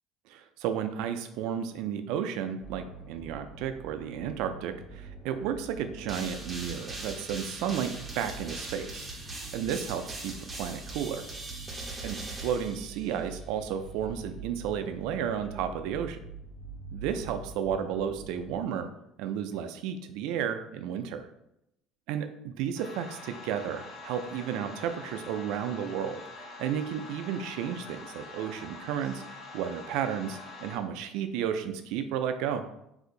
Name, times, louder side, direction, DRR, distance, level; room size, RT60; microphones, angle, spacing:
voice 1, 0.3-11.3 12.0-16.2 16.9-18.9 19.2-21.3 22.1-32.6, right 8 dB, 75° right, 8 dB, 0.3 m, -33 dB
sound 1, 2.6-18.6, right 3 dB, 70° left, 1.0 m, -45 dB
sound 2, 6.1-13.4, right 2 dB, 15° right, 0.6 m, -41 dB
sound 3, 22.8-30.8, left 3 dB, 55° left, 1.2 m, -45 dB
2.6 x 2.4 x 3.8 m, 0.82 s
cardioid pair, 125°, 0 cm